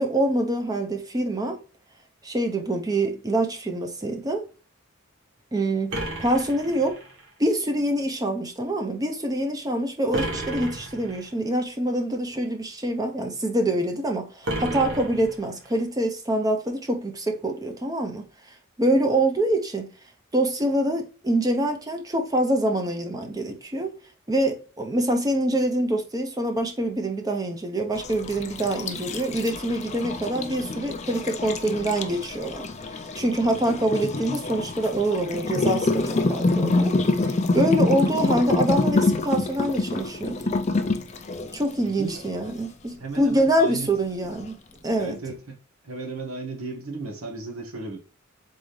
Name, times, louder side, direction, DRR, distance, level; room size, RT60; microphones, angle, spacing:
voice 1, 0.0-1.6 2.2-4.4 5.5-7.0 7.4-18.2 18.8-19.9 20.3-23.9 24.3-32.6 33.2-36.9 37.5-40.5 41.5-44.6 44.8-45.2, right 1 dB, 15° right, 0.6 m, -25 dB
sound 1, 5.9-7.3 10.1-11.3 14.4-15.8, right 1 dB, 55° right, 1.3 m, -32 dB
sound 2, 28.0-41.7, left 2 dB, 30° left, 0.5 m, -26 dB
voice 2, 41.8-42.2 43.0-43.9 45.0-45.6 45.8-48.0, right 3 dB, 85° right, 1.3 m, -35 dB
4.1 x 3.6 x 3.2 m
head